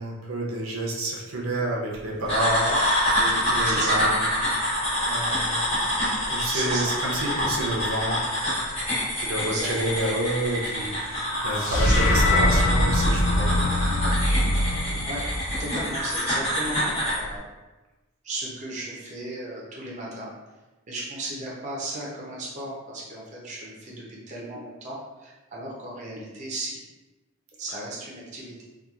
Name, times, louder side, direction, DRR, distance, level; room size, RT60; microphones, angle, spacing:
voice 1, 0.0-2.6 3.5-4.2 5.0-5.7 6.3-8.2 9.2-13.6, right 1 dB, 85° right, -2 dB, 0.6 m, -29 dB
sound 1, 2.3-17.2, equal, 30° left, 1.0 m, -26 dB
voice 2, 2.3-2.8 3.1-4.0 6.5-6.9 9.5-10.0 11.8-11.9 15.1-15.2 15.6-17.5 18.2-20.3 20.9-26.8 27.6-28.6, right 1 dB, 35° right, -4 dB, 0.5 m, -35 dB
sound 2, 11.6-16.0, left 1 dB, 60° left, 0.4 m, -22 dB
2.8 x 2.3 x 2.3 m, 1.1 s
head